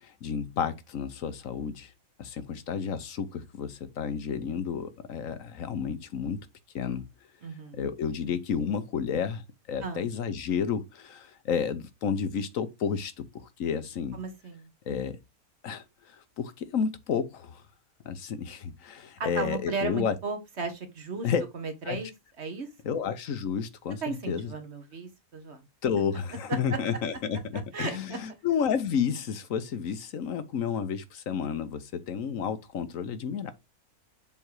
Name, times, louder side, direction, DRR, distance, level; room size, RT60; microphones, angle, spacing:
voice 1, 0.0-1.9 2.2-6.5 6.7-7.0 7.7-9.4 9.7-14.2 14.9-15.2 15.6-17.6 18.0-20.1 21.2-21.4 21.9-22.0 22.8-24.5 25.8-33.5, left 7 dB, 65° left, 1.2 m, -31 dB
voice 2, 7.4-7.8 9.8-10.0 14.1-14.7 19.2-21.3 21.5-22.1 22.4-23.0 24.0-25.6 26.5-26.8 27.7-28.2, right 4 dB, 50° right, 1.4 m, -35 dB
7.2 x 3.5 x 4.7 m
omnidirectional pair, 1.6 m